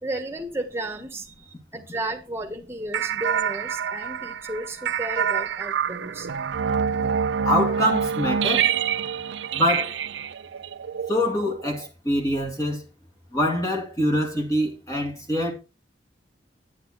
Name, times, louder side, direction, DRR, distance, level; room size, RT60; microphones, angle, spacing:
voice 1, 0.0-6.3, right 1 dB, 15° right, 1.6 m, -33 dB
sound 1, 2.9-11.8, right 7 dB, 80° right, 0.5 m, -26 dB
voice 2, 7.4-8.7 9.5-9.9 11.1-12.8 13.3-15.5, left 1 dB, 20° left, 2.0 m, -24 dB
9.5 x 8.8 x 4.3 m
head